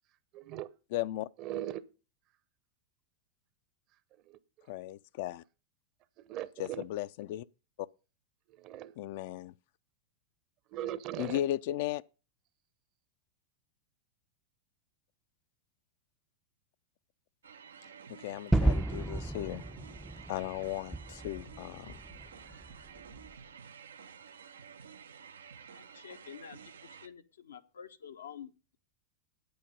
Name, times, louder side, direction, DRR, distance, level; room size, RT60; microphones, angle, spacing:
voice 1, 0.3-0.7 1.4-1.8 4.3-4.4 6.2-6.8 8.5-8.9 10.7-11.4, right 12 dB, 45° right, 0.8 m, -39 dB
voice 2, 0.9-1.3 4.7-5.4 6.6-7.4 9.0-9.5 11.2-12.0 18.1-19.6 20.3-22.0, left 14 dB, 60° left, 0.4 m, -36 dB
sound 1, 17.4-27.1, right 7 dB, 85° right, 0.6 m, -51 dB
Gunshot gunfire / Fireworks / Boom, 18.5-23.3, right 2 dB, 5° right, 0.4 m, -33 dB
voice 3, 25.7-28.8, left 8 dB, 85° left, 0.9 m, -49 dB
8.7 x 8.7 x 5.3 m
hypercardioid pair, 100°, 0 cm